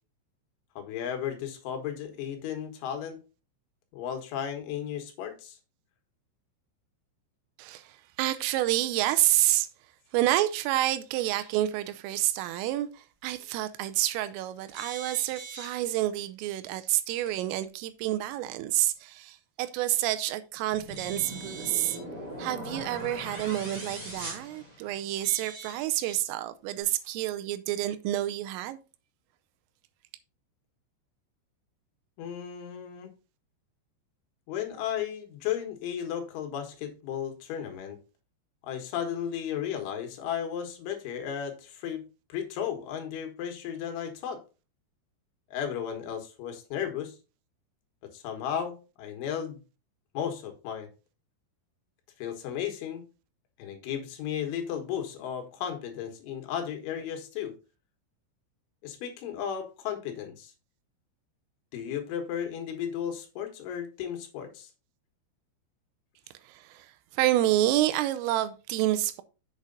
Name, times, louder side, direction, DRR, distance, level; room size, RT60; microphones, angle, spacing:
voice 1, 0.8-3.2 3.9-5.6 32.2-33.1 34.5-38.0 38.6-42.0 42.3-44.4 45.5-47.2 48.0-49.6 50.2-50.9 52.2-53.0 53.6-57.5 58.8-60.5 61.7-64.7, left 9 dB, 75° left, 3.6 m, -34 dB
voice 2, 7.6-9.7 10.1-22.0 22.4-28.8 66.5-69.2, right 14 dB, 90° right, 3.3 m, -28 dB
sound 1, 14.7-15.8 17.2-17.3 20.9-22.0 23.3-23.4 25.2-26.2 27.0-27.1, right 5 dB, 55° right, 3.5 m, -43 dB
sound 2, 20.7-25.3, equal, 25° right, 2.1 m, -40 dB
7.6 x 6.5 x 3.9 m
omnidirectional pair, 5.8 m